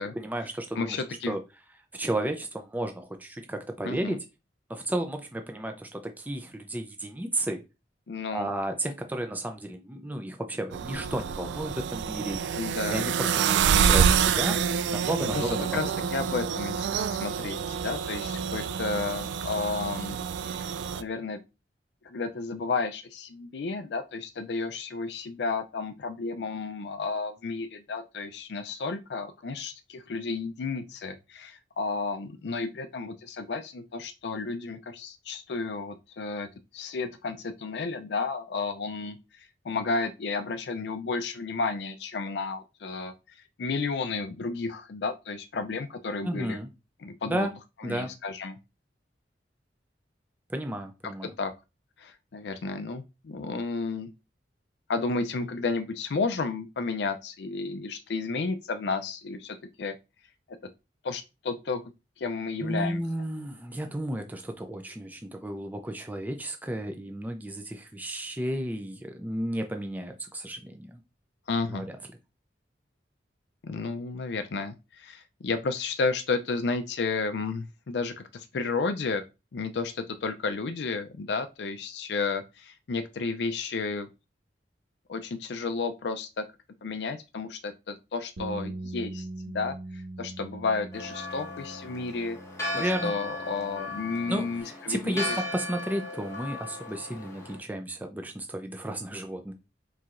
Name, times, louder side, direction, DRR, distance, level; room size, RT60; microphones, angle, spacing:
voice 1, 0.0-1.0 1.3-1.4 1.9-4.3 4.7-7.6 8.3-12.6 12.9-14.6 14.9-16.1 46.2-46.7 47.2-47.5 47.8-48.1 50.5-51.3 62.6-71.0 71.7-71.9 92.7-93.1 94.3-99.5, right 1 dB, 10° right, 0.5 m, -33 dB
voice 2, 0.8-1.4 3.8-4.2 8.1-8.5 12.5-13.1 15.3-20.2 20.4-20.7 21.0-21.4 22.0-36.5 36.7-43.1 43.6-46.6 47.0-47.5 47.8-48.6 51.4-51.5 52.0-54.1 54.9-59.9 61.0-61.8 62.2-63.0 71.5-71.9 73.6-79.2 79.5-84.1 85.1-86.4 86.8-89.3 89.5-92.4 92.8-95.4, left 4 dB, 70° left, 0.4 m, -32 dB
sound 1, 10.7-21.0, right 7 dB, 90° right, 0.3 m, -27 dB
sound 2, 88.4-94.6, right 2 dB, 70° right, 0.7 m, -42 dB
Church bell, 90.9-97.6, left 2 dB, 15° left, 1.1 m, -37 dB
4.5 x 4.0 x 2.5 m
head